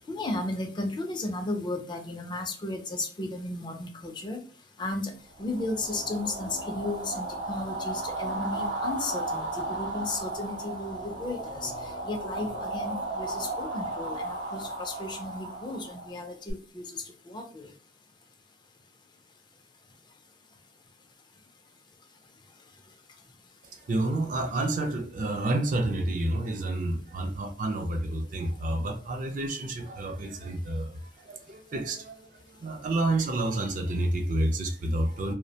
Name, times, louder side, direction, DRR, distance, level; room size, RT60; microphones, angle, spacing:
voice 1, 0.1-4.4 4.8-5.1 5.4-11.7 12.0-17.7, left 2 dB, 25° left, 0.4 m, -34 dB
sound 1, 5.4-16.5, right 2 dB, 85° right, 0.7 m, -35 dB
voice 2, 23.7-35.3, right 1 dB, 45° right, 0.4 m, -29 dB
2.4 x 2.1 x 2.7 m
head